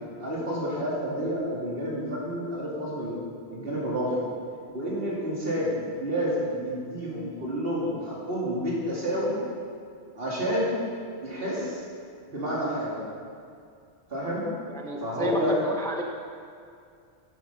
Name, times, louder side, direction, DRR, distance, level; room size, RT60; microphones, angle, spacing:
voice 1, 0.2-3.2 3.5-4.2 4.7-9.4 10.1-10.8 11.2-11.8 12.3-13.0 14.1-14.4 15.0-15.6, equal, 55° right, -6 dB, 2.7 m, -29 dB
voice 2, 14.7-16.0, equal, 5° left, 2 dB, 0.5 m, -32 dB
9.1 x 8.4 x 5.6 m, 2.3 s
omnidirectional pair, 1.2 m